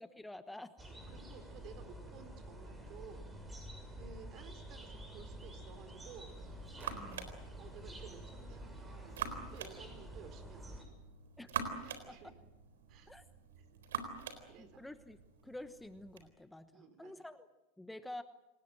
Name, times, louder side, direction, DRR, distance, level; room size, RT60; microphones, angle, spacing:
voice 1, 0.0-0.7 6.9-7.4 11.4-11.5 12.1-12.2 13.1-13.2 14.6-17.5 17.8-18.2, left 1 dB, 5° left, 10 dB, 1.1 m, -49 dB
sound 1, 0.8-10.8, right 1 dB, 15° right, 7.0 m, -49 dB
voice 2, 0.9-3.3 3.9-6.3 7.6-9.2 9.5-11.0 11.8-12.3 12.9-13.1 13.6-13.7 14.2-14.8 16.7-17.1, right 7 dB, 50° right, 10 dB, 4.3 m, -55 dB
sound 2, 6.1-16.3, right 7 dB, 80° right, 3.9 m, -45 dB
28.0 x 19.5 x 7.7 m, 0.99 s
hypercardioid pair, 100°, 0 cm